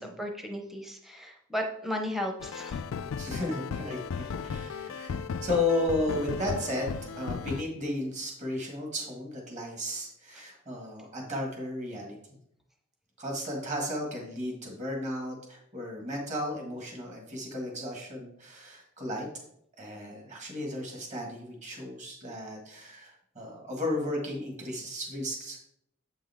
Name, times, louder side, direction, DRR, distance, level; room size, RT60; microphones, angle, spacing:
voice 1, 0.0-2.8 10.3-10.4, equal, ahead, 3 dB, 0.6 m, -35 dB
sound 1, 2.4-7.6, left 6 dB, 75° left, 0.4 m, -35 dB
voice 2, 3.2-12.2 13.2-19.3 19.8-25.7, left 1 dB, 35° right, 0 dB, 1.8 m, -34 dB
7.7 x 5.4 x 3.5 m, 0.72 s
head